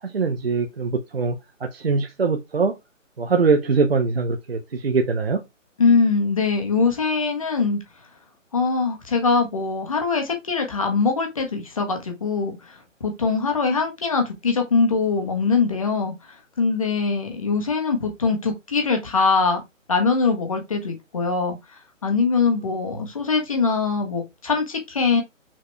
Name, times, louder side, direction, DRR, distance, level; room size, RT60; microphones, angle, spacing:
voice 1, 0.0-2.8 3.2-5.4, right 4 dB, 50° right, 1.0 m, -22 dB
voice 2, 5.8-7.8 8.5-12.7 13.0-19.6 19.9-21.6 22.0-25.2, left 4 dB, 25° left, 1.5 m, -22 dB
6.4 x 4.0 x 4.5 m
hypercardioid pair, 175°, 39 cm